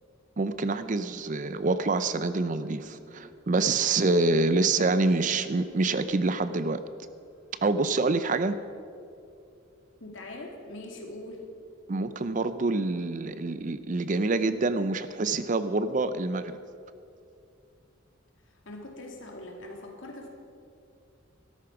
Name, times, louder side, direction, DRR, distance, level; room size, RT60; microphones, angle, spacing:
voice 1, 0.4-6.8 7.6-8.6 11.9-16.6, right 3 dB, 40° right, 12 dB, 0.5 m, -26 dB
Marimba xylophone, 2.6-7.3, right 1 dB, 75° right, 1.7 m, -54 dB
voice 2, 10.0-11.5 18.7-20.3, left 1 dB, 70° left, 1 dB, 2.4 m, -42 dB
13.5 x 12.5 x 5.9 m, 2.5 s
head